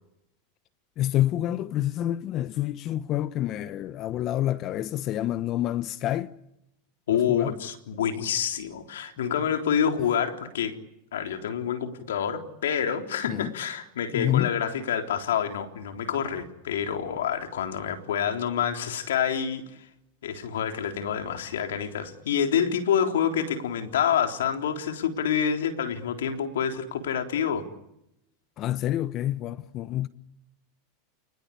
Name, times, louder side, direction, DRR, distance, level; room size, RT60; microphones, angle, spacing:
voice 1, 1.0-6.3 7.1-7.5 13.3-13.5 14.1-14.5 28.6-30.1, left 13 dB, 45° left, 1.0 m, -28 dB
voice 2, 7.1-10.8 11.1-19.6 20.2-27.6, left 8 dB, 85° left, 3.6 m, -27 dB
29.5 x 20.5 x 8.6 m
hypercardioid pair, 115°, 0 cm